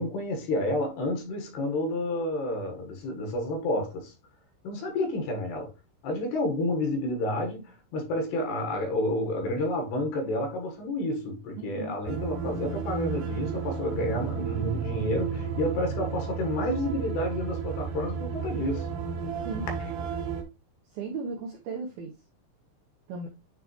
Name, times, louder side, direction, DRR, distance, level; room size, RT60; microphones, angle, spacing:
voice 1, 0.0-4.1 4.6-5.7 6.0-18.9, left 1 dB, 65° left, 3.2 m, -30 dB
voice 2, 11.6-11.9 19.4-19.7 20.9-22.1 23.1-23.3, right 4 dB, 90° right, 2.1 m, -35 dB
sound 1, 12.1-20.4, right 6 dB, 70° right, 3.2 m, -32 dB
9.6 x 3.5 x 3.1 m
omnidirectional pair, 5.5 m